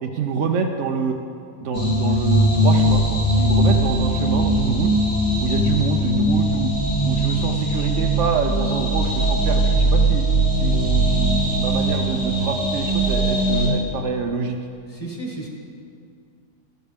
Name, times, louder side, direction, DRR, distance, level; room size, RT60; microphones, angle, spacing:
voice 1, 0.0-1.2 1.6-4.9 5.4-6.7 7.0-10.2 10.6-14.6, right 5 dB, 65° right, 3 dB, 0.8 m, -26 dB
sound 1, 1.7-13.7, right 1 dB, 65° left, 3.5 m, -20 dB
voice 2, 14.9-15.5, right 2 dB, 20° left, -2 dB, 1.5 m, -32 dB
12.5 x 12.0 x 3.5 m, 2.3 s
omnidirectional pair, 1.7 m